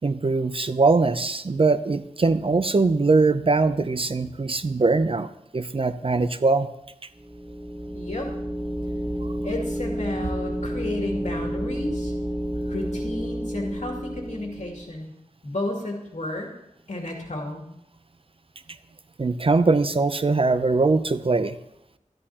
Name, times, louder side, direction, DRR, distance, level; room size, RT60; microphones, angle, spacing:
voice 1, 0.0-6.7 19.2-21.6, right 3 dB, 40° right, 12 dB, 0.5 m, -21 dB
sound 1, 7.2-14.9, equal, 10° right, 1.0 m, -30 dB
voice 2, 7.9-8.3 9.4-12.1 12.7-15.1 15.4-16.5 16.9-17.7, left 1 dB, 60° left, 0 dB, 2.3 m, -32 dB
13.0 x 11.0 x 2.9 m, 0.81 s
wide cardioid pair, 65°, 14 cm